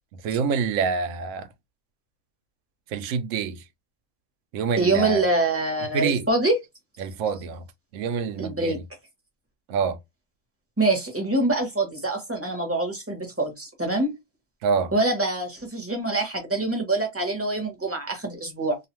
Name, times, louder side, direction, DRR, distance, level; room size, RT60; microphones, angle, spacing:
voice 1, 0.2-1.5 2.9-3.6 4.5-5.3 5.9-6.3 7.0-7.6 7.9-8.8 9.7-10.0 14.6-14.9, right 6 dB, 70° right, 0.8 m, -26 dB
voice 2, 4.8-6.6 8.4-8.8 10.8-14.1 14.9-18.8, right 2 dB, 15° right, 0.6 m, -25 dB
2.5 x 2.4 x 2.9 m
omnidirectional pair, 1.6 m